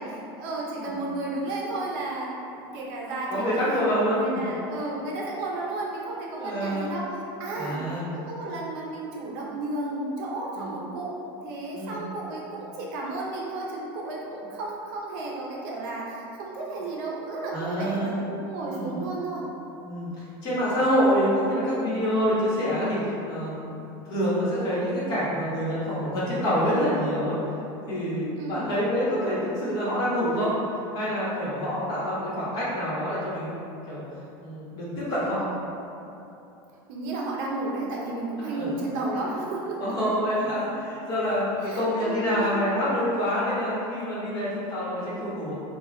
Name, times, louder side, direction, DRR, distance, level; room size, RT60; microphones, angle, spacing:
voice 1, 0.0-11.1 11.4-19.4 28.4-28.7 36.9-39.9 41.6-42.5, right 2 dB, 55° right, -3 dB, 0.6 m, -33 dB
voice 2, 3.3-4.5 6.3-6.9 7.6-8.1 10.5-10.7 11.7-12.0 17.5-18.3 18.7-19.0 19.8-23.7 24.1-27.3 27.9-30.5 30.9-33.6 33.9-34.0 34.4-35.5 38.5-38.7 39.8-45.5, equal, 35° left, -9 dB, 1.1 m, -26 dB
3.7 x 2.3 x 3.7 m, 2.9 s
cardioid pair, 170°, 12 cm